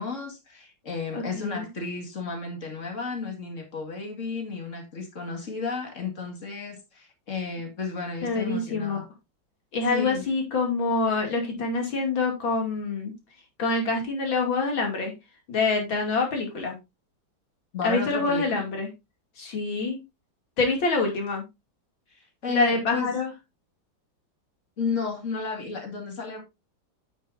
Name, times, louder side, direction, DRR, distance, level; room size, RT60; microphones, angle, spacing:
voice 1, 0.0-9.0 9.9-10.3 17.7-18.6 22.1-23.1 24.8-26.4, left 4 dB, 40° left, 2.4 m, -33 dB
voice 2, 1.1-1.7 8.2-9.0 9.7-13.1 13.6-15.1 15.5-16.7 17.8-18.9 19.4-20.0 20.6-21.4 22.5-23.3, left 3 dB, 80° left, 3.4 m, -26 dB
9.2 x 8.7 x 2.7 m
omnidirectional pair, 2.1 m